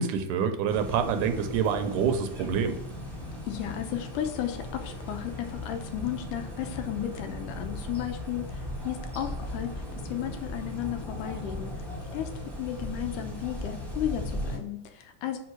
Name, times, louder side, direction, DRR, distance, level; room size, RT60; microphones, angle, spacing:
voice 1, 0.0-2.8, right 7 dB, 80° right, 7 dB, 2.2 m, -27 dB
sound 1, 0.7-14.6, left 1 dB, ahead, 1.0 m, -37 dB
voice 2, 3.4-9.8 10.1-11.8 12.1-12.3 12.6-15.4, left 11 dB, 85° left, 6 dB, 2.4 m, -34 dB
5.5 x 5.1 x 6.2 m, 0.71 s
omnidirectional pair, 3.6 m